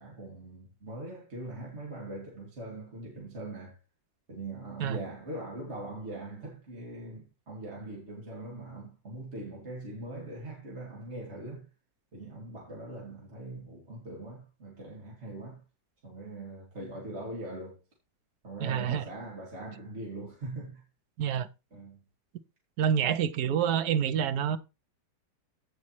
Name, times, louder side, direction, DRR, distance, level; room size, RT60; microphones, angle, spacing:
voice 1, 0.0-3.8 4.3-11.7 12.1-15.6 16.0-17.8 18.4-20.8 21.7-22.0, right 2 dB, 35° right, 2.9 m, -41 dB
voice 2, 18.6-19.0 21.2-21.5 22.8-24.6, right 8 dB, 65° right, 1.1 m, -27 dB
16.0 x 5.5 x 3.1 m
omnidirectional pair, 2.0 m